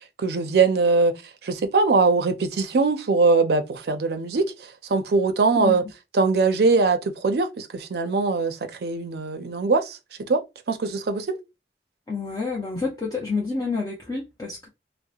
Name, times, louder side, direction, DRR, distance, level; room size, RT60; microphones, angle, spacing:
voice 1, 0.2-1.1 1.4-4.5 4.9-5.8 6.1-10.4 10.7-11.4, right 4 dB, 65° right, 0.5 m, -21 dB
voice 2, 12.1-14.7, left 4 dB, 20° left, 0.5 m, -28 dB
2.8 x 2.0 x 2.3 m
head